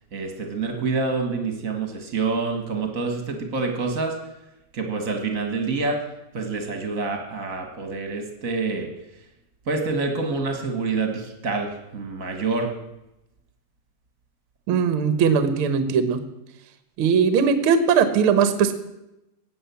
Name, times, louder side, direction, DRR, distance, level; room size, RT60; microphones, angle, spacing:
voice 1, 0.1-4.2 4.7-6.0 6.3-8.9 9.7-12.7, right 4 dB, 40° right, 4 dB, 1.1 m, -27 dB
voice 2, 14.7-16.2 17.0-18.7, right 6 dB, 65° right, 10 dB, 1.3 m, -19 dB
17.5 x 7.8 x 7.1 m, 0.91 s
omnidirectional pair, 4.2 m